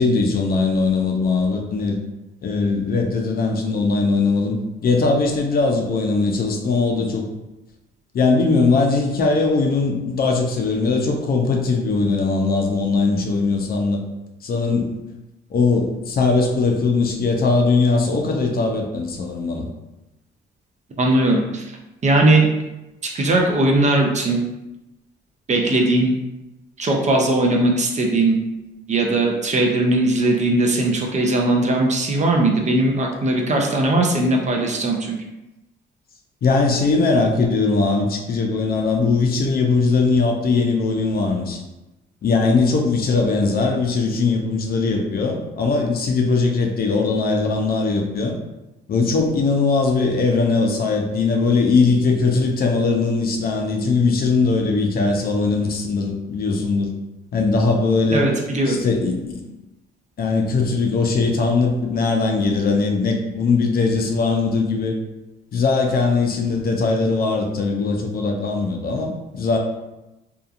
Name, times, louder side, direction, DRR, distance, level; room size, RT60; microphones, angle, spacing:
voice 1, 0.0-2.0 2.4-7.2 8.1-14.0 14.4-14.9 15.5-19.7 36.4-41.6 42.2-48.4 48.9-56.9 57.3-58.3 58.7-59.4 60.2-65.0 65.5-69.6, left 4 dB, 50° left, 2 dB, 0.5 m, -20 dB
voice 2, 21.0-21.6 22.0-22.5 23.0-24.4 25.5-26.1 26.8-28.4 28.9-35.1 58.1-58.8, right 2 dB, 35° right, 1 dB, 0.5 m, -19 dB
2.7 x 2.4 x 2.4 m, 0.99 s
cardioid pair, 90°, 20 cm